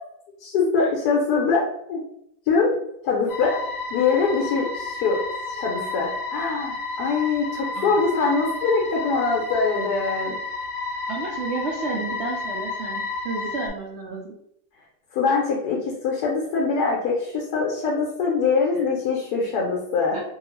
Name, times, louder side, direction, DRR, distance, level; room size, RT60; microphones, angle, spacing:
voice 1, 0.4-2.0 2.5-2.7 3.0-3.6 3.9-5.2 5.5-10.4 15.1-20.2, left 4 dB, 85° left, -2 dB, 1.1 m, -23 dB
sound 1, 3.3-13.7, left 3 dB, 65° left, 1.1 m, -31 dB
voice 2, 11.1-14.3 18.7-18.9 20.1-20.2, right 3 dB, 75° right, -3 dB, 0.6 m, -31 dB
2.7 x 2.2 x 3.1 m, 0.75 s
omnidirectional pair, 1.7 m